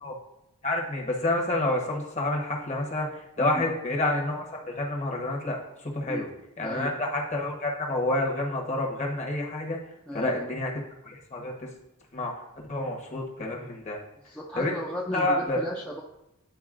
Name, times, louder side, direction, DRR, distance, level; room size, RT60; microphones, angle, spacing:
voice 1, 0.6-6.3 6.6-9.8 10.1-10.7 11.1-11.7 12.1-12.3 12.7-14.0 14.5-14.7 15.1-15.6, left 2 dB, 30° left, 0 dB, 1.0 m, -29 dB
voice 2, 3.4-3.7 6.0-6.3 6.6-6.9 10.1-10.5 14.2-16.0, left 1 dB, 5° left, -4 dB, 0.4 m, -35 dB
10.5 x 4.0 x 2.5 m, 0.87 s
head